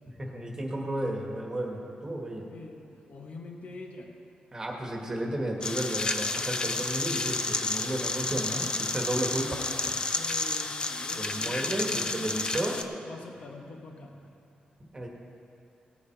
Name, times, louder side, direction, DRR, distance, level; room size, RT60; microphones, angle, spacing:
voice 1, 0.2-2.4 4.5-10.0 11.2-12.8 14.9-15.1, right 1 dB, 20° right, 0 dB, 1.7 m, -33 dB
voice 2, 2.5-4.2 10.1-12.5 12.7-14.4, left 3 dB, 55° left, 2 dB, 1.2 m, -45 dB
sound 1, 5.6-12.8, left 3 dB, 30° left, 0.6 m, -31 dB
18.5 x 7.1 x 4.7 m, 2.6 s
cardioid pair, 110°, 3 cm